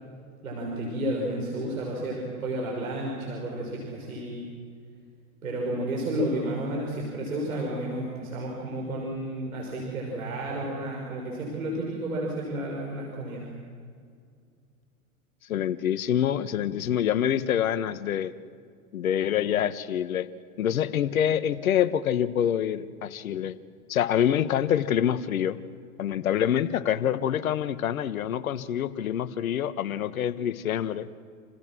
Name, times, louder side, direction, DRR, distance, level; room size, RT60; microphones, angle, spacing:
voice 1, 0.4-4.4 5.4-13.5, right 1 dB, 85° right, -2 dB, 6.2 m, -31 dB
voice 2, 15.5-18.3 18.9-20.3 20.6-23.6 23.9-25.6 26.0-31.1, left 10 dB, 80° left, 13 dB, 1.4 m, -26 dB
29.5 x 28.5 x 6.3 m, 2.1 s
hypercardioid pair, 100°, 41 cm